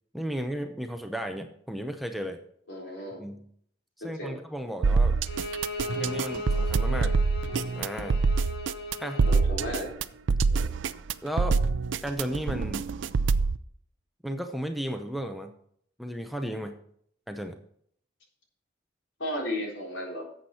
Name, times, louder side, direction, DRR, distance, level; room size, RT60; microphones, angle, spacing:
voice 1, 0.1-2.4 3.2-3.4 4.0-5.2 6.0-7.1 7.7-8.2 9.0-9.3 11.2-11.6 12.0-12.8 14.2-15.5 16.0-16.8 17.3-17.6, equal, ahead, 5 dB, 0.7 m, -34 dB
voice 2, 2.7-3.2 4.2-4.4 9.3-9.9 10.5-10.7 19.2-20.3, equal, 80° left, -2 dB, 3.9 m, -34 dB
sound 1, 4.8-13.6, right 4 dB, 90° right, 0.5 m, -25 dB
Bowed string instrument, 5.3-9.5, left 1 dB, 60° left, 1.5 m, -37 dB
11.5 x 7.9 x 4.3 m, 0.65 s
head